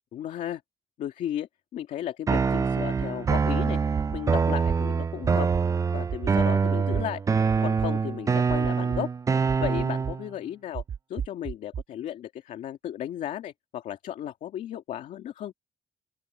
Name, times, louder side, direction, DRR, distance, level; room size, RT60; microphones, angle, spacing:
voice 1, 0.1-0.6 1.0-3.8 4.1-5.5 5.9-7.2 7.6-9.1 9.6-10.8 11.1-15.5, left 11 dB, 80° left, 2.3 m, -34 dB
sound 1, 2.3-10.3, right 5 dB, 25° right, 0.4 m, -25 dB
sound 2, 3.0-3.3 4.0-4.2 4.7-4.8 5.2-5.6 6.1-6.5 6.9-7.0 7.5-7.9 8.5-9.0 9.5-10.1 10.7-11.8, right 8 dB, 55° right, 2.1 m, -33 dB
open air
cardioid pair, 120°, 13 cm